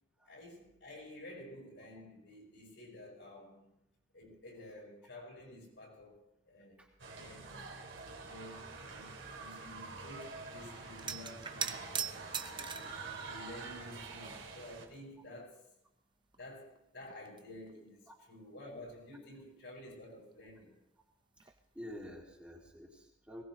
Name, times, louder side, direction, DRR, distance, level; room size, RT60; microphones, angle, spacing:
voice 1, 0.3-3.7 4.1-6.2 6.5-7.7 8.2-12.9 13.2-15.6 16.4-20.7, left 1 dB, 65° left, 6.9 m, -51 dB
sound 1, 7.0-14.9, right 3 dB, 75° right, 2.9 m, -47 dB
sound 2, 11.0-13.0 13.8-14.6 14.9-15.0 16.3-16.4 16.8-17.8 21.4-21.6 21.9-22.1, right 6 dB, 25° right, 0.8 m, -41 dB
voice 2, 21.4-23.4, equal, 5° right, 3.4 m, -49 dB
22.0 x 19.0 x 3.1 m
head